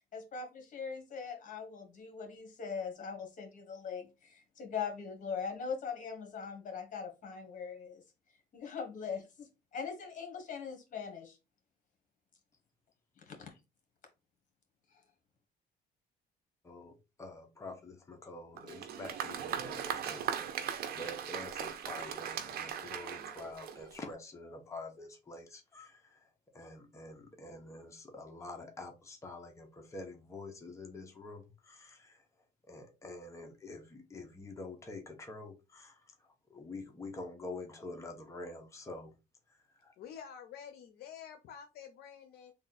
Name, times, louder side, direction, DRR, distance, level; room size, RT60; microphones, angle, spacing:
voice 1, 0.1-8.0 8.5-11.4 13.2-13.5, left 6 dB, 50° left, 1.5 m, -41 dB
voice 2, 16.6-32.3 32.7-39.1 39.5-39.9, left 2 dB, 15° left, 0.9 m, -47 dB
Applause, 18.6-24.1, right 8 dB, 65° right, 0.6 m, -39 dB
voice 3, 40.0-42.5, left 8 dB, 70° left, 0.6 m, -49 dB
3.5 x 2.5 x 4.1 m
cardioid pair, 110°, 17 cm